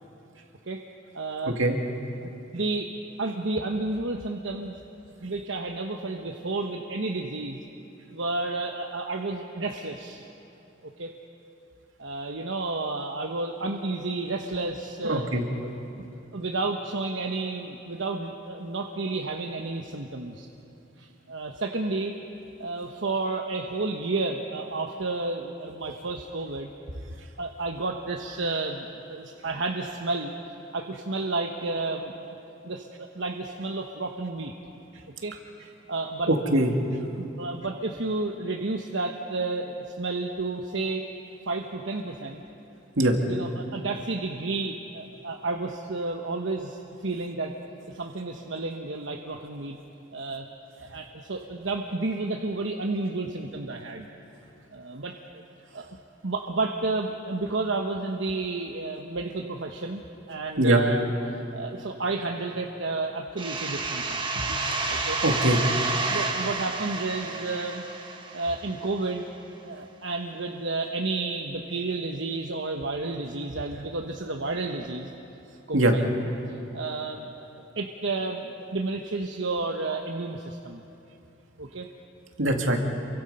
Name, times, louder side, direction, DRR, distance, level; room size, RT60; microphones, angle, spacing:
voice 1, 1.1-1.6 1.8-1.9 2.2-4.8 5.2-7.6 8.1-10.2 10.8-11.1 12.0-15.3 15.6-15.7 16.3-20.5 21.0-22.1 22.6-26.7 27.4-30.3 30.7-32.3 32.6-34.5 35.2-35.4 35.9-36.3 37.0-41.1 41.5-42.4 43.2-47.5 47.9-49.8 50.1-50.5 50.8-54.1 54.7-55.4 55.7-56.0 56.2-60.0 60.3-64.2 64.9-65.2 65.6-65.7 66.1-67.9 68.3-69.3 69.6-75.1 75.7-76.1 76.5-80.8 81.6-81.9, right 3 dB, 70° right, 2 dB, 1.1 m, -31 dB
voice 2, 15.0-15.4 36.3-36.7 43.0-43.1 60.6-60.8 64.4-64.6 65.2-65.6 75.7-75.9 82.4-82.8, right 1 dB, 90° right, 3 dB, 2.4 m, -22 dB
sound 1, 63.4-68.9, right 3 dB, 25° right, 1.6 m, -30 dB
28.0 x 23.5 x 5.6 m, 2.9 s
head